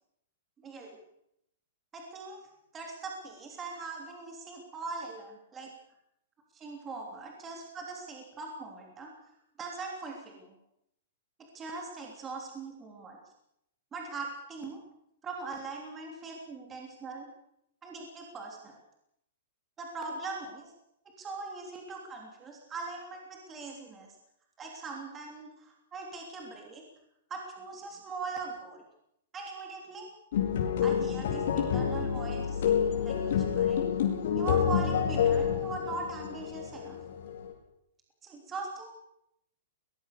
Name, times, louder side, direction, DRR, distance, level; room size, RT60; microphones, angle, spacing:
voice 1, 0.6-1.0 1.9-2.4 2.7-5.7 6.5-9.1 9.6-10.6 11.5-13.2 13.9-14.8 15.2-17.3 17.8-18.8 19.8-20.7 21.2-24.1 24.6-26.8 27.3-28.8 29.3-30.1 30.8-33.9 34.3-37.0 38.2-38.9, right 3 dB, 15° right, 1 dB, 3.2 m, -41 dB
sound 1, 30.3-37.5, left 8 dB, 60° left, 5.0 m, -28 dB
22.0 x 20.0 x 6.8 m, 0.76 s
hypercardioid pair, 165°, 0 cm